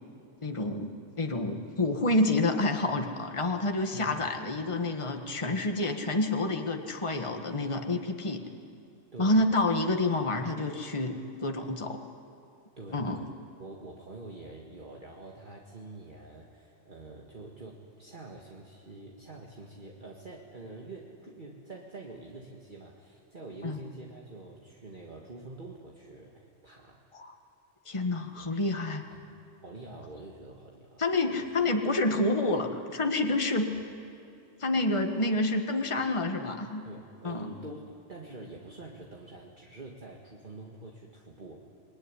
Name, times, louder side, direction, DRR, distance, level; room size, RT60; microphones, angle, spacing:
voice 1, 0.4-0.9 1.2-8.4 9.2-12.0 12.9-13.2 23.6-23.8 27.1-27.3 27.9-29.0 31.0-33.7 34.6-36.8 37.2-37.5, left 2 dB, 25° left, 4 dB, 1.6 m, -28 dB
voice 2, 3.9-4.3 9.1-9.4 12.8-13.3 13.6-27.1 28.3-28.6 29.1-29.2 29.6-31.0 31.3-31.5 33.7-33.8 36.9-41.7, right 2 dB, 40° right, -2 dB, 2.1 m, -46 dB
27.5 x 21.0 x 9.9 m, 2.6 s
omnidirectional pair, 1.3 m